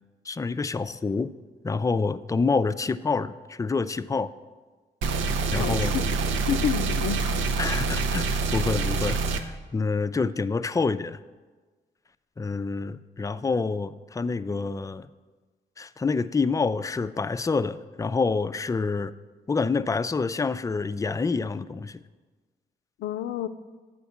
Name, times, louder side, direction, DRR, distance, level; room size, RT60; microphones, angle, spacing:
voice 1, 0.2-1.3 1.6-4.3 5.5-5.9 7.6-11.2 12.4-15.1 15.8-19.1 19.5-22.0, left 4 dB, 15° left, 0.3 m, -27 dB
sound 1, 5.0-9.4, right 3 dB, 90° right, 0.6 m, -26 dB
voice 2, 5.6-6.1 6.5-7.4 23.0-23.5, left 9 dB, 85° left, 0.4 m, -29 dB
8.2 x 4.4 x 7.1 m
supercardioid pair, 55°, 19 cm